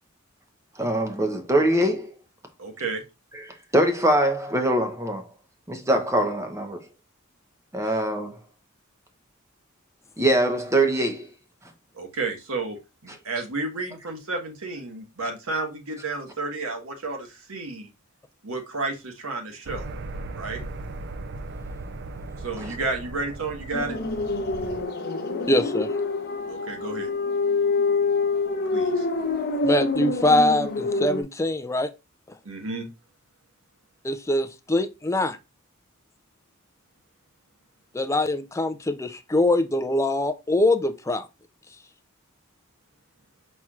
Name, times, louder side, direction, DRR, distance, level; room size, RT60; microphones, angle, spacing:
voice 1, 0.8-2.1 3.3-5.3 5.7-6.8 7.7-8.4 10.2-11.3 22.6-22.7, right 1 dB, 15° right, 0.8 m, -23 dB
voice 2, 2.6-3.0 12.0-12.8 13.0-17.9 18.4-19.8 20.3-20.6 22.4-23.9 26.5-27.1 28.7-29.0 32.4-32.9, right 3 dB, 70° right, 1.3 m, -31 dB
sound 1, 19.7-24.8, right 2 dB, 55° right, 0.5 m, -37 dB
sound 2, 23.7-31.2, left 3 dB, 45° left, 0.8 m, -26 dB
voice 3, 25.5-25.9 29.6-31.9 34.0-35.4 37.9-41.3, left 1 dB, 15° left, 0.4 m, -23 dB
4.5 x 4.3 x 2.3 m
head